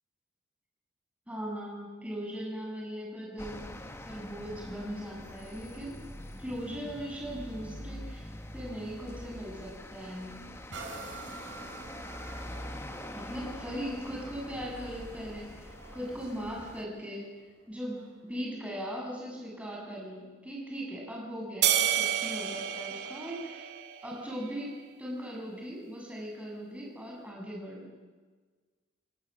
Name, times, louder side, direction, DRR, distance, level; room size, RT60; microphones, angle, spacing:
voice 1, 1.3-3.7 4.1-6.0 6.4-10.4 13.1-17.3 17.7-23.7 24.0-27.9, equal, 5° right, -3 dB, 7.5 m, -39 dB
sound 1, 3.4-16.8, left 1 dB, 15° left, 1.3 m, -44 dB
sound 2, 10.7-18.3 18.9-19.0, right 3 dB, 85° right, 4.1 m, -48 dB
sound 3, 21.6-24.2, right 10 dB, 60° right, 1.7 m, -29 dB
29.0 x 17.0 x 7.7 m, 1.4 s
head